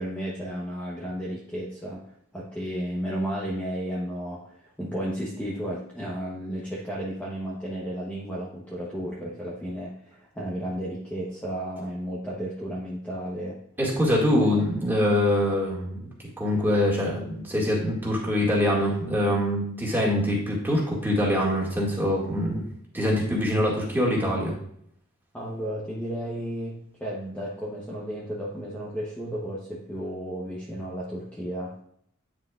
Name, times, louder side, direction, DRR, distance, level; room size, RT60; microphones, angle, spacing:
voice 1, 0.0-2.0 2.3-13.6 14.4-14.6 25.3-31.7, equal, 5° left, -6 dB, 1.0 m, -33 dB
voice 2, 13.8-16.1 16.4-22.6 22.9-24.6, left 1 dB, 10° right, -4 dB, 2.1 m, -24 dB
9.4 x 6.2 x 2.5 m, 0.68 s
head